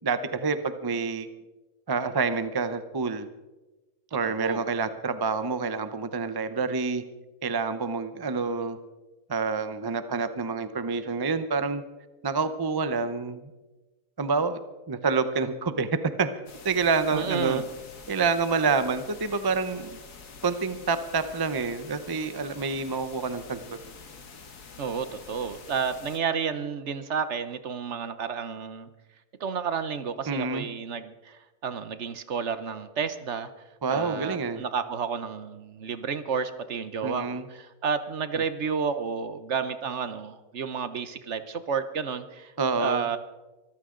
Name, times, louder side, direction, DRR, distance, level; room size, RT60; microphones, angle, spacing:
voice 1, 0.0-1.3 1.9-3.3 4.1-7.0 7.4-8.8 9.3-11.8 12.2-13.5 14.2-14.6 14.9-15.9 16.2-16.3 16.6-17.6 18.1-20.0 20.4-23.8 30.3-30.7 33.8-34.6 37.0-37.5 38.3-38.4 42.6-43.1, right 4 dB, 30° right, 11 dB, 0.4 m, -27 dB
voice 2, 4.2-4.6 17.1-17.6 24.8-28.9 29.4-33.5 33.9-42.5 42.8-43.2, right 6 dB, 55° right, 11 dB, 1.0 m, -31 dB
sound 1, 16.5-26.2, left 5 dB, 75° left, 2.1 m, -47 dB
24.0 x 14.5 x 3.8 m, 1.1 s
omnidirectional pair, 1.7 m